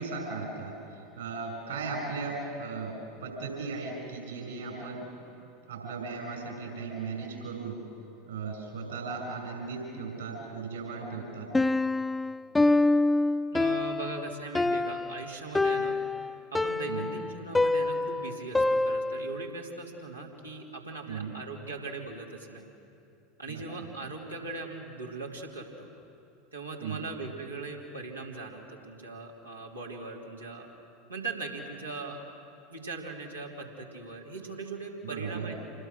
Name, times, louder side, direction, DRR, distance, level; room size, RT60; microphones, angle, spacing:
voice 1, 0.0-5.1 5.7-7.8 8.3-11.5 16.9-17.1 21.0-21.3 23.5-23.6 26.8-27.0 35.0-35.5, right 4 dB, 70° right, 1 dB, 6.5 m, -37 dB
Piano, 11.5-19.4, left 2 dB, 10° left, 0.5 m, -26 dB
voice 2, 13.5-16.0 16.5-22.6 23.4-25.9 26.5-30.7 31.1-32.2 32.7-35.7, right 3 dB, 85° right, -3 dB, 3.0 m, -40 dB
27.5 x 20.5 x 6.5 m, 2.7 s
figure-of-eight pair, 80°, 0 cm